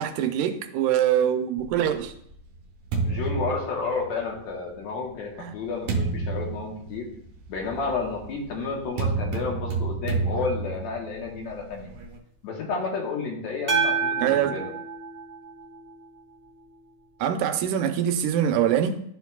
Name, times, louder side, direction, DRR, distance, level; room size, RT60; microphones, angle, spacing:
voice 1, 0.0-2.1 5.4-5.5 14.2-14.5 17.2-19.0, right 10 dB, 85° right, 2.2 m, -24 dB
sound 1, 1.6-4.4 5.1-12.2, right 4 dB, 65° right, 2.0 m, -31 dB
voice 2, 3.0-7.1 7.5-11.9 12.4-14.7, left 4 dB, 65° left, 2.3 m, -31 dB
sound 2, 13.7-16.1, right 5 dB, 30° right, 1.3 m, -28 dB
13.0 x 4.6 x 2.3 m
omnidirectional pair, 3.6 m